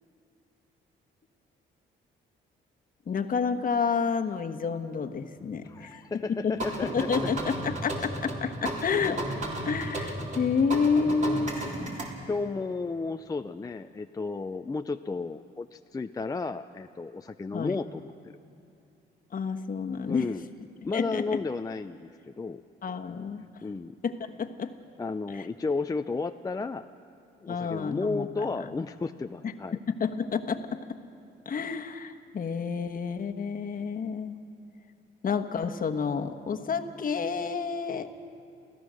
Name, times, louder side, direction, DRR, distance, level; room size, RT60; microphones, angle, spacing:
voice 1, 3.1-6.0 6.3-6.5 6.8-9.2 9.6-11.6 17.5-17.8 19.3-20.3 20.9-21.2 22.8-23.4 24.0-24.7 25.3-25.4 27.5-28.4 29.4-29.5 29.9-31.0 31.4-34.4 35.2-38.1, left 5 dB, 45° left, 5 dB, 1.2 m, -29 dB
voice 2, 5.6-7.1 8.6-8.7 12.3-18.1 20.1-20.4 20.8-22.6 23.6-24.0 25.0-26.9 27.4-29.8, left 4 dB, 20° left, 8 dB, 0.5 m, -33 dB
sound 1, 6.6-12.1, right 1 dB, 40° right, 3.6 m, -34 dB
28.0 x 15.5 x 6.4 m, 2.5 s
cardioid pair, 90°, 20 cm